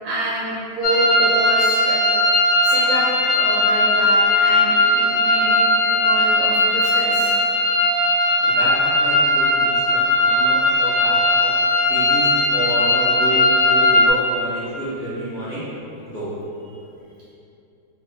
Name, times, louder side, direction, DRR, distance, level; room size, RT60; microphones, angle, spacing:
voice 1, 0.0-2.0 2.6-3.1 3.3-7.3, right 1 dB, 75° right, -8 dB, 1.2 m, -27 dB
sound 1, 0.8-14.1, left 2 dB, 80° left, 1.3 m, -18 dB
voice 2, 8.4-11.5 11.9-15.7 16.0-16.3, right 1 dB, 65° left, -12 dB, 0.6 m, -29 dB
3.4 x 2.1 x 3.1 m, 2.7 s
omnidirectional pair, 2.2 m